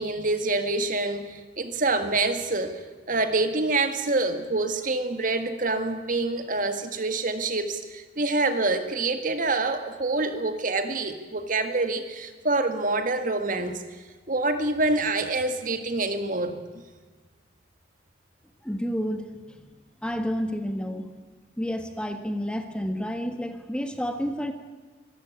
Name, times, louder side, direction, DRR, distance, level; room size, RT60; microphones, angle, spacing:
voice 1, 0.0-13.8 14.3-16.8, right 2 dB, 45° right, 8 dB, 1.8 m, -26 dB
voice 2, 18.6-19.7 20.0-21.1 21.6-24.5, equal, 5° left, 7 dB, 1.4 m, -30 dB
24.5 x 14.5 x 9.5 m, 1.3 s
head